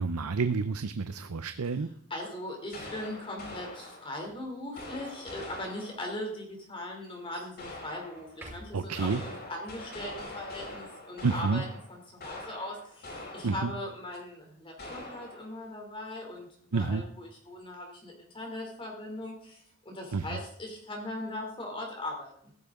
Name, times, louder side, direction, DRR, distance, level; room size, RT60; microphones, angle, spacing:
voice 1, 0.0-1.9 8.7-9.2 11.2-11.6 13.4-13.7 16.7-17.0 20.1-20.4, right 4 dB, 85° right, 10 dB, 0.6 m, -29 dB
voice 2, 2.1-16.5 16.7-22.5, left 1 dB, 25° left, 1 dB, 3.0 m, -39 dB
sound 1, 2.7-4.3 4.8-6.2 7.6-8.4 8.8-13.9 14.1-14.2 14.8-15.6, left 1 dB, 45° left, 5.1 m, -44 dB
sound 2, 4.1-5.3 6.1-6.2 7.3-7.6 8.3-9.3 16.4-17.6, right 1 dB, 10° right, 5.4 m, -53 dB
15.0 x 12.0 x 3.7 m, 0.63 s
head